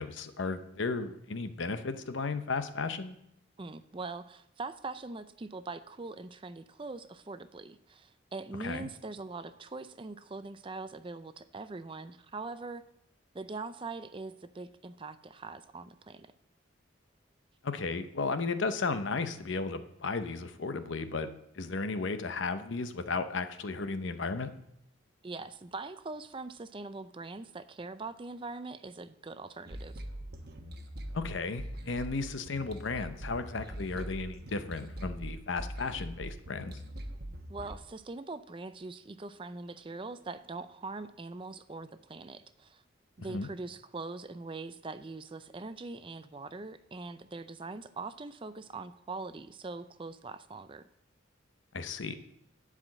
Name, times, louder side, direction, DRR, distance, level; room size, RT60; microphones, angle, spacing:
voice 1, 0.0-3.2 8.6-8.9 17.6-21.3 21.6-24.5 31.1-36.8 43.3-43.5 51.7-52.1, left 4 dB, 70° left, 10 dB, 0.7 m, -34 dB
voice 2, 3.6-12.8 13.3-16.3 25.2-30.0 37.5-42.8 43.2-50.9, right 3 dB, 25° right, 12 dB, 0.4 m, -42 dB
sound 1, 29.7-37.8, right 1 dB, 50° right, 1.0 m, -42 dB
11.5 x 5.0 x 7.3 m, 0.78 s
head